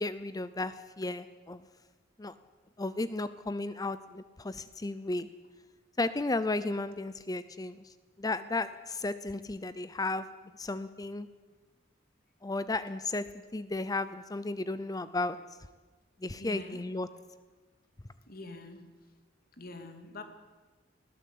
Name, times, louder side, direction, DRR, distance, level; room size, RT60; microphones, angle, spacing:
voice 1, 0.0-1.7 2.2-2.3 2.8-5.3 6.0-10.3 10.5-11.3 12.4-13.3 13.5-15.4 16.2-17.1, left 2 dB, 20° left, 14 dB, 0.6 m, -34 dB
voice 2, 16.4-16.8 18.3-18.9 19.6-20.2, left 2 dB, 50° left, 6 dB, 2.7 m, -44 dB
21.0 x 15.5 x 8.5 m, 1.3 s
head